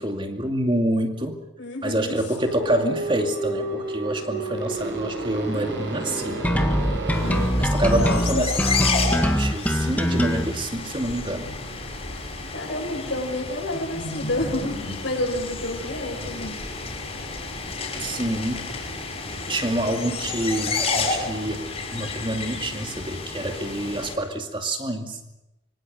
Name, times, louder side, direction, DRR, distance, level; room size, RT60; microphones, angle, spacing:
voice 1, 0.0-1.4 1.8-6.5 7.6-8.5 9.0-11.6 18.0-18.7 19.5-25.2, right 1 dB, 25° right, 5 dB, 2.4 m, -27 dB
voice 2, 1.6-2.2 7.2-8.6 12.5-16.6, left 1 dB, 65° left, 0 dB, 7.7 m, -29 dB
sound 1, 2.4-7.5, right 2 dB, 60° right, 7.7 m, -30 dB
sound 2, 6.4-10.4, equal, 10° left, 1.7 m, -22 dB
sound 3, 7.1-24.1, left 4 dB, 30° left, 6.2 m, -31 dB
25.0 x 25.0 x 6.5 m, 0.90 s
head